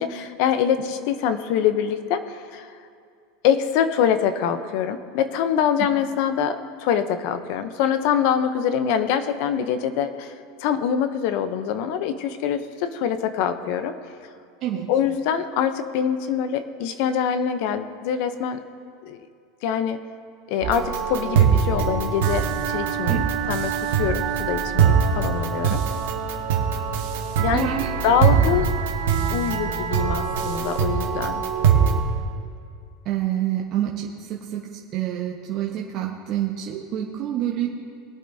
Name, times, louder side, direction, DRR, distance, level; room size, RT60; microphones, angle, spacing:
voice 1, 0.0-2.7 3.4-13.9 14.9-18.6 19.0-19.2 19.6-20.0 20.5-25.8 27.4-27.7 28.0-28.7 29.3-31.4, left 8 dB, 55° left, 10 dB, 0.7 m, -24 dB
the musican, 20.6-32.0, right 7 dB, 80° right, 1.5 m, -22 dB
voice 2, 27.5-27.9 33.0-37.7, right 11 dB, 40° right, -2 dB, 1.1 m, -27 dB
21.0 x 8.7 x 2.7 m, 2.3 s
supercardioid pair, 150°, 0 cm